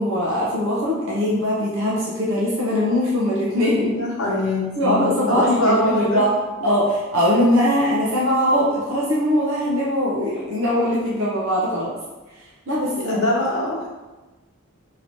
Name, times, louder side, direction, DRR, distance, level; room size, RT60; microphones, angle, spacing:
voice 1, 0.0-4.1 4.8-6.3 6.6-11.9 12.7-13.3, left 1 dB, 70° right, -6 dB, 0.7 m, -21 dB
voice 2, 3.9-6.2 13.0-13.9, left 1 dB, 85° left, -5 dB, 0.9 m, -23 dB
3.0 x 2.7 x 4.4 m, 1.1 s
head